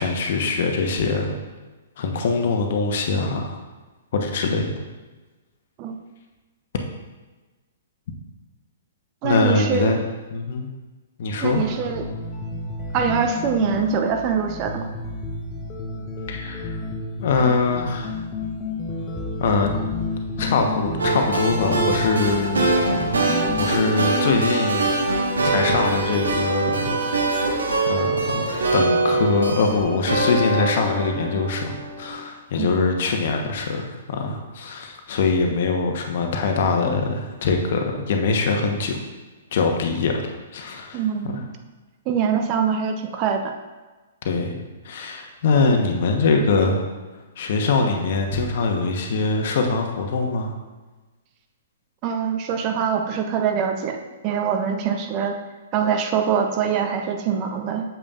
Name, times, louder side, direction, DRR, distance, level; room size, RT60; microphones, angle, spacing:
voice 1, 0.0-1.4 2.0-3.6 4.1-4.6 9.2-10.0 10.3-10.7 11.2-11.7 16.3-16.7 17.2-18.1 19.4-19.7 20.4-22.7 23.6-25.1 25.4-27.0 27.3-27.6 27.9-38.9 39.5-41.4 44.2-44.5 44.8-46.8 47.4-50.5, left 4 dB, 55° left, 3 dB, 1.1 m, -23 dB
voice 2, 9.2-9.9 11.4-12.0 12.9-14.8 32.6-32.8 40.9-41.5 42.1-43.5 52.0-54.0 54.2-55.4 55.7-57.8, right 7 dB, 35° right, 5 dB, 0.7 m, -23 dB
sound 1, 11.5-23.9, left 2 dB, 25° left, 0.9 m, -31 dB
sound 2, 21.0-32.1, right 2 dB, 75° right, 1.4 m, -23 dB
8.5 x 7.3 x 2.5 m, 1.2 s
figure-of-eight pair, 115°, 0 cm